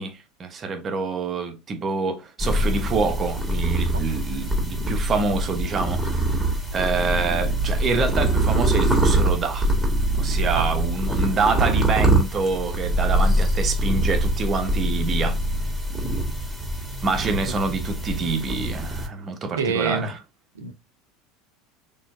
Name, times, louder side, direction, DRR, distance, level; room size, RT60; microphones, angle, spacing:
voice 1, 0.0-6.4 6.7-9.7 10.1-15.4 17.0-20.2, right 4 dB, 30° right, 1.1 m, -26 dB
sound 1, 2.4-19.1, right 1 dB, ahead, 2.0 m, -23 dB
voice 2, 19.6-20.2 20.5-20.7, right 5 dB, 70° right, 0.8 m, -26 dB
4.4 x 3.3 x 2.6 m
figure-of-eight pair, 75°, 0 cm